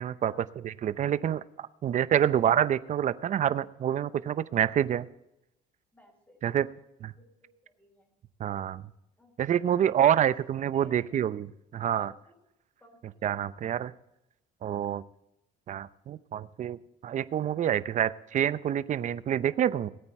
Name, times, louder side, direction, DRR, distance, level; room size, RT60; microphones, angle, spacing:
voice 1, 0.0-5.1 6.4-6.7 7.0-7.1 8.4-8.8 9.4-12.1 13.2-13.9 14.6-15.0 15.7-16.8 17.0-19.9, right 10 dB, 45° right, 16 dB, 0.6 m, -27 dB
voice 2, 5.9-6.6 7.2-8.1 9.2-10.1 10.7-11.1 12.0-12.3 12.8-13.2 19.5-19.6, left 1 dB, 15° left, -1 dB, 4.9 m, -57 dB
19.0 x 8.8 x 4.4 m, 0.88 s
cardioid pair, 110°, 17 cm